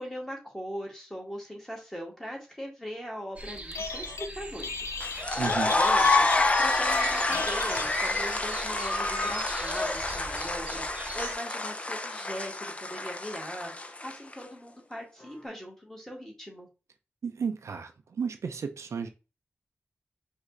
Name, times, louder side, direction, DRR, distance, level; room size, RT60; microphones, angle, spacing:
voice 1, 0.0-4.7 5.0-16.7, equal, 10° left, 1.8 m, -40 dB
sound 1, 3.4-11.3, right 2 dB, 25° right, 0.8 m, -40 dB
Telephone, 3.6-4.3 4.6-8.3, left 5 dB, 85° left, 0.4 m, -36 dB
sound 2, 5.0-14.3, left 2 dB, 25° left, 0.5 m, -28 dB
voice 2, 5.4-5.7 17.2-19.1, right 6 dB, 85° right, 0.5 m, -33 dB
5.1 x 2.5 x 3.8 m
wide cardioid pair, 130°, 5 cm